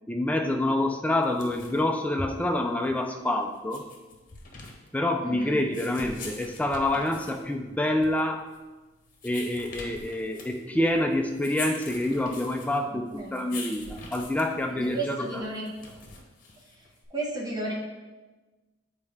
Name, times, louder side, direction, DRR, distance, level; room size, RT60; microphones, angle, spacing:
voice 1, 0.1-3.9 4.9-8.4 9.2-15.4, left 1 dB, 5° left, 3 dB, 0.4 m, -27 dB
sound 1, 1.2-17.1, left 4 dB, 40° left, 1.0 m, -45 dB
voice 2, 5.2-5.5 12.9-13.6 14.8-15.8 17.1-17.7, right 2 dB, 20° right, -3 dB, 1.1 m, -33 dB
7.5 x 4.3 x 3.5 m, 1.2 s
head